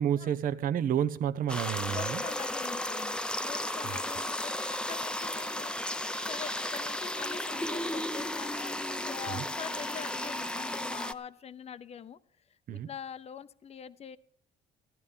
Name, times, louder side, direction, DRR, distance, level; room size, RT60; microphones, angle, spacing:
voice 1, 0.0-2.2 3.8-4.0 9.3-9.4 12.7-12.9, right 9 dB, 55° right, 0.8 m, -30 dB
sound 1, 1.5-11.1, left 1 dB, 5° left, 0.7 m, -34 dB
voice 2, 1.9-5.8 6.2-12.2 12.7-14.2, left 7 dB, 40° left, 0.8 m, -44 dB
15.5 x 11.5 x 5.6 m
cardioid pair, 110°, 17 cm